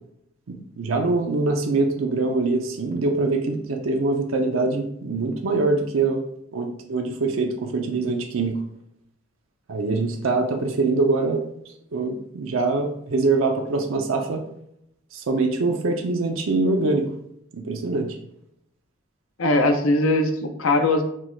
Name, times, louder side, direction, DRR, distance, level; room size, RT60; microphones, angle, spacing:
voice 1, 0.5-6.2 6.5-8.6 9.7-11.4 11.9-14.4 15.1-17.1 17.5-18.1, right 3 dB, 75° right, 3 dB, 0.5 m, -23 dB
voice 2, 19.4-21.0, left 2 dB, 85° left, 5 dB, 0.6 m, -20 dB
4.5 x 2.3 x 4.3 m, 0.75 s
head